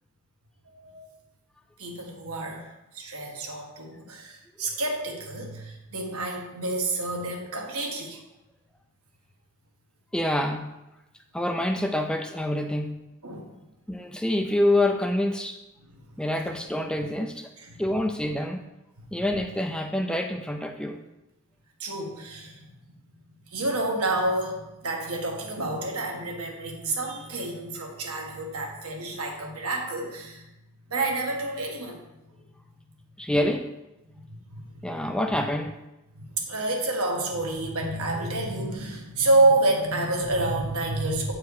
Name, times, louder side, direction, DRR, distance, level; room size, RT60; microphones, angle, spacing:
voice 1, 0.6-1.0 1.8-2.7 2.9-8.2 13.2-13.5 15.9-16.0 16.4-16.5 17.6-17.7 21.8-22.6 23.5-30.5 30.9-32.0 34.3-35.0 36.1-41.3, right 2 dB, 75° right, 0 dB, 1.5 m, -28 dB
voice 2, 10.1-10.8 11.3-13.1 13.9-15.6 16.2-17.5 17.8-18.7 19.1-21.0 33.2-33.7 34.8-35.8, left 1 dB, 5° left, 5 dB, 0.4 m, -26 dB
8.3 x 4.7 x 4.7 m, 0.97 s
head